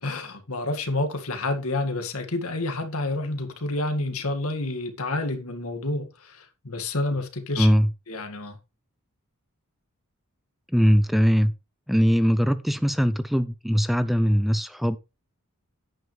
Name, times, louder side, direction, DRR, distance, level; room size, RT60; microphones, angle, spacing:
voice 1, 0.0-7.7 8.1-8.6, left 2 dB, 70° left, 2.0 m, -29 dB
voice 2, 7.6-7.9 10.7-11.5 11.9-15.0, equal, ahead, 0.5 m, -21 dB
10.5 x 9.4 x 3.3 m
head